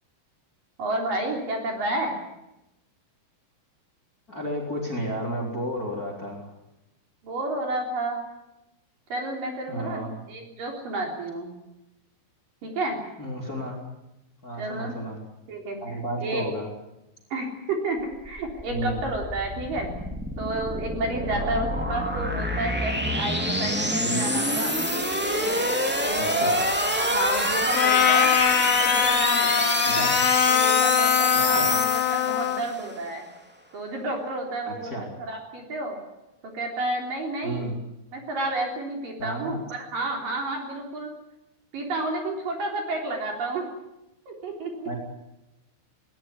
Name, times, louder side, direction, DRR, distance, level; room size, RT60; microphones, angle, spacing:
voice 1, 0.8-2.1 7.2-8.2 9.1-11.5 12.6-13.0 14.6-14.9 15.5-16.5 17.3-19.9 20.4-24.8 25.2-26.6 27.0-28.3 28.6-30.1 30.5-33.2 33.7-36.0 36.4-37.7 38.1-41.1 41.7-43.7 44.3-44.9, right 2 dB, 45° right, 2 dB, 4.8 m, -31 dB
voice 2, 4.3-6.5 9.7-10.2 13.2-13.8 14.4-15.2 15.8-16.7 18.7-19.0 21.3-21.7 24.0-24.2 26.2-26.6 29.9-30.2 31.3-31.7 34.7-35.1 37.4-37.7 39.2-39.5 44.8-45.0, right 1 dB, 20° left, 0 dB, 3.6 m, -32 dB
sound 1, 18.1-32.7, equal, 5° right, 0.8 m, -26 dB
Trumpet, 27.7-32.7, left 11 dB, 90° left, 4.0 m, -22 dB
20.5 x 19.0 x 9.9 m, 0.93 s
omnidirectional pair, 5.6 m